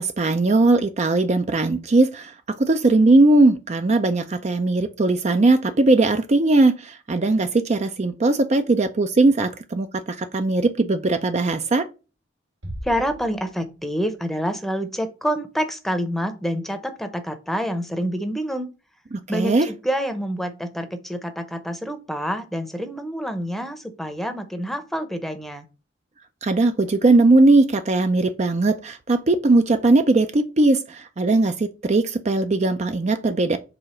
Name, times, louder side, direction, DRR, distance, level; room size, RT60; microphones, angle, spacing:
voice 1, 0.0-2.3 2.6-11.9 19.1-19.7 26.4-33.6, right 2 dB, 35° right, 0.4 m, -19 dB
Bass drum, 12.6-14.1, equal, 75° right, 1.3 m, -38 dB
voice 2, 12.8-18.7 19.3-25.7, equal, ahead, 0.7 m, -27 dB
4.9 x 3.7 x 5.7 m
head